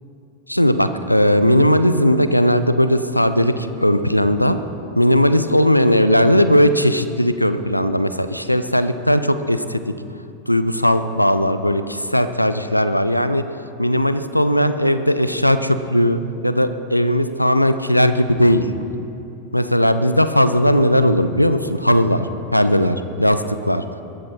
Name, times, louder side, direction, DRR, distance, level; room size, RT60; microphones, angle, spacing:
voice 1, 0.5-4.6 5.0-9.8 10.5-13.4 13.8-18.7 19.5-23.8, equal, 90° left, 11 dB, 0.7 m, -17 dB
21.5 x 14.0 x 4.2 m, 2.8 s
figure-of-eight pair, 90°, 0 cm